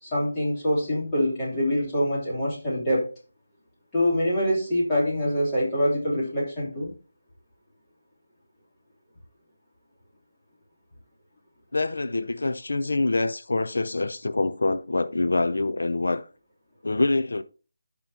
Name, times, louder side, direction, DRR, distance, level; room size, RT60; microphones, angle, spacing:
voice 1, 0.0-3.1 3.9-6.9, equal, 15° left, 3.1 m, -25 dB
voice 2, 11.7-16.2 16.8-17.4, left 2 dB, 80° left, 0.5 m, -25 dB
15.0 x 5.3 x 2.9 m
figure-of-eight pair, 175°, 0 cm